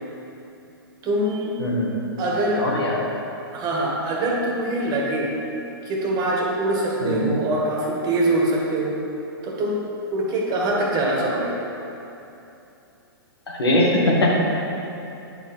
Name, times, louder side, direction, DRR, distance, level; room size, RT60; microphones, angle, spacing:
voice 1, 1.0-1.5 2.2-2.7 3.5-5.3 5.8-9.0 9.4-9.8 10.1-11.6, right 1 dB, 30° right, -2 dB, 1.7 m, -23 dB
voice 2, 1.6-1.9 2.6-3.0 7.0-7.3 13.5-14.3, left 1 dB, 85° left, -3 dB, 2.0 m, -21 dB
9.4 x 4.9 x 5.3 m, 2.9 s
hypercardioid pair, 125°, 13 cm